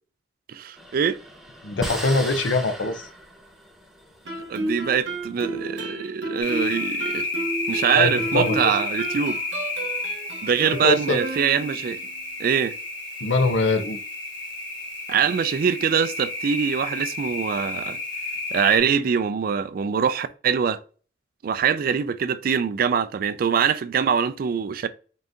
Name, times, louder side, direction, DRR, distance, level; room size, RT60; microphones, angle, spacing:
voice 1, 0.5-1.2 4.5-7.3 7.7-9.4 10.4-12.0 12.4-12.7 15.1-18.0 18.5-20.8 21.4-24.9, right 7 dB, 50° right, 0.3 m, -23 dB
sound 1, 0.8-5.4, equal, ahead, 0.8 m, -37 dB
voice 2, 1.6-3.1 7.9-8.8 10.8-11.2 13.2-14.0, left 3 dB, 90° left, 0.6 m, -23 dB
Guitar, 4.3-12.0, right 1 dB, 70° right, 0.9 m, -32 dB
sound 2, 6.4-18.8, left 3 dB, 70° left, 2.1 m, -31 dB
3.8 x 2.6 x 3.5 m
head